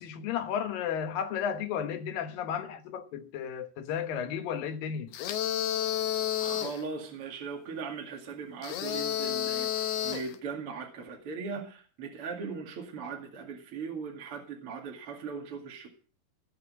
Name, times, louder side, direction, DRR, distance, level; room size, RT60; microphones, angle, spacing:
voice 1, 0.0-5.1, left 8 dB, 70° left, 2.9 m, -33 dB
sound 1, 5.1-6.8 8.6-10.4, left 11 dB, 90° left, 3.3 m, -31 dB
voice 2, 6.4-15.9, right 5 dB, 40° right, 2.7 m, -39 dB
19.5 x 6.8 x 8.4 m
omnidirectional pair, 4.4 m